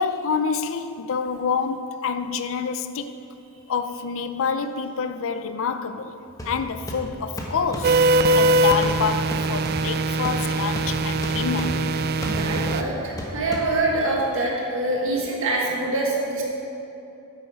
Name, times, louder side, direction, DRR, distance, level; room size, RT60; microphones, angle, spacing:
voice 1, 0.0-3.2 3.7-6.1 6.4-8.0 8.3-11.8, left 5 dB, 65° left, 0.5 m, -27 dB
sound 1, 6.4-14.1, equal, 15° left, 1.2 m, -35 dB
sound 2, 7.8-12.8, right 2 dB, 45° right, 0.4 m, -22 dB
voice 2, 12.2-16.4, right 2 dB, 65° right, 1.6 m, -25 dB
9.4 x 7.9 x 4.8 m
head